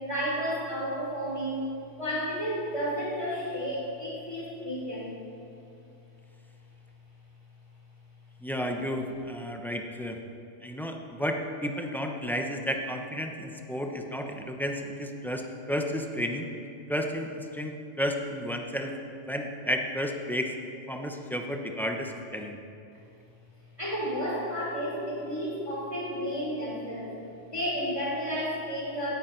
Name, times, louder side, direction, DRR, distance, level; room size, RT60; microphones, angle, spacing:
voice 1, 0.0-1.7 2.0-5.2 23.8-27.1 27.4-29.1, equal, 25° left, -5 dB, 3.4 m, -32 dB
voice 2, 8.4-10.2 10.6-16.5 16.9-19.0 19.3-20.5 20.9-22.6, equal, ahead, 3 dB, 0.7 m, -32 dB
17.0 x 9.3 x 4.5 m, 2.6 s
omnidirectional pair, 1.2 m